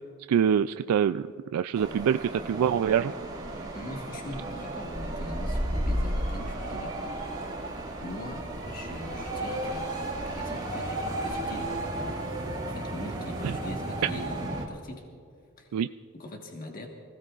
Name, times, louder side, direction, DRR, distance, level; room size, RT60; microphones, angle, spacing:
voice 1, 0.3-3.1 13.4-13.5 15.7-15.9, right 8 dB, 90° right, 10 dB, 0.3 m, -25 dB
sound 1, 1.7-14.7, right 1 dB, 20° right, 2.2 m, -33 dB
voice 2, 3.7-7.6 8.0-9.9 10.2-15.1 15.6-15.8 16.1-16.9, left 1 dB, 40° left, 1 dB, 1.4 m, -42 dB
25.5 x 17.0 x 2.4 m, 2.4 s
head